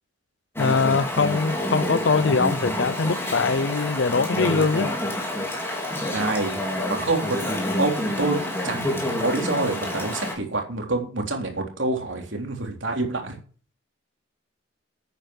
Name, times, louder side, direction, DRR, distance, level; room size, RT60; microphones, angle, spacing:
voice 1, 0.6-4.9, left 4 dB, 65° left, 0.5 m, -22 dB
Chatter / Stream, 0.6-10.3, left 1 dB, 10° left, 3.6 m, -28 dB
voice 2, 6.1-7.4 7.8-13.4, right 2 dB, 70° right, 3.5 m, -27 dB
11.0 x 9.3 x 6.5 m
head